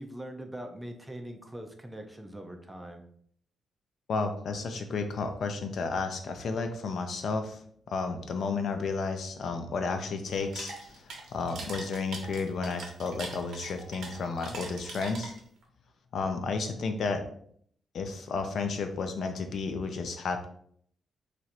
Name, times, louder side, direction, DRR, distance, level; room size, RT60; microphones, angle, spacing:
voice 1, 0.0-3.0, right 1 dB, 5° right, 4 dB, 0.4 m, -42 dB
voice 2, 4.1-7.6 7.9-15.4 16.1-17.2 17.9-20.5, left 4 dB, 55° left, 6 dB, 0.4 m, -32 dB
sound 1, 10.3-15.6, right 3 dB, 70° right, 0.8 m, -42 dB
3.0 x 2.5 x 4.3 m, 0.64 s
wide cardioid pair, 170°, 0 cm